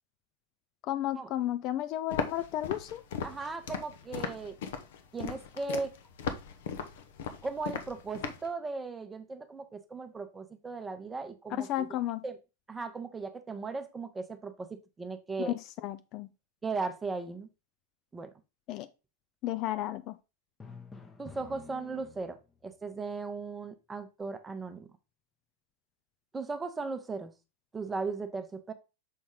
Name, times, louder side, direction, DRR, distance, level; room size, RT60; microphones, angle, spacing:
voice 1, 0.9-3.0 11.6-12.2 15.4-16.3 18.7-18.9 19.4-20.2, left 13 dB, 40° left, 0.4 m, -33 dB
Walk footsteps, 2.1-8.5, left 7 dB, 55° left, 0.8 m, -37 dB
voice 2, 3.2-4.5 5.1-5.9 7.4-11.9 12.2-12.4 12.7-15.5 16.6-17.5 18.1-18.3 21.2-22.4 22.6-24.9 26.3-27.3 27.7-28.7, right 4 dB, 15° right, 0.9 m, -37 dB
Drum, 20.6-22.6, left 4 dB, 15° left, 0.9 m, -49 dB
6.5 x 4.2 x 3.7 m
figure-of-eight pair, 90°, 0 cm